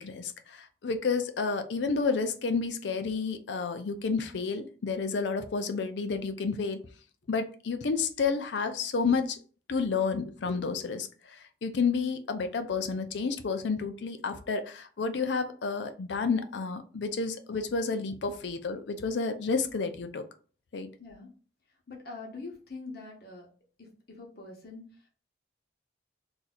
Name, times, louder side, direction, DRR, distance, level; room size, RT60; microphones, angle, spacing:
voice 1, 0.0-6.8 7.3-9.4 9.7-20.2 20.7-20.9, left 4 dB, 75° left, 0.5 m, -30 dB
voice 2, 21.0-21.3 21.9-23.5 23.8-25.1, left 3 dB, 55° left, 0.9 m, -44 dB
2.7 x 2.4 x 4.1 m
head